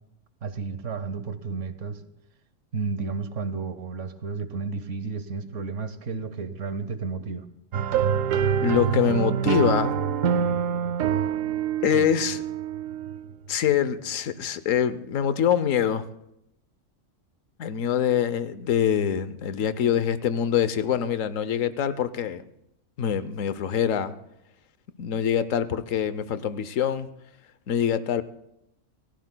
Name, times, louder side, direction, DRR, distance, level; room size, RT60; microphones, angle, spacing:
voice 1, 0.4-2.0 2.7-7.5 11.9-12.1, right 4 dB, 70° right, 11 dB, 1.2 m, -32 dB
sound 1, 7.7-13.3, right 8 dB, 90° right, 1.1 m, -25 dB
voice 2, 8.6-9.9 11.8-12.4 13.5-16.0 17.6-22.4 23.0-24.1 25.0-27.1 27.7-28.2, left 9 dB, 85° left, 13 dB, 1.1 m, -24 dB
28.5 x 15.0 x 2.2 m, 0.82 s
omnidirectional pair, 1.3 m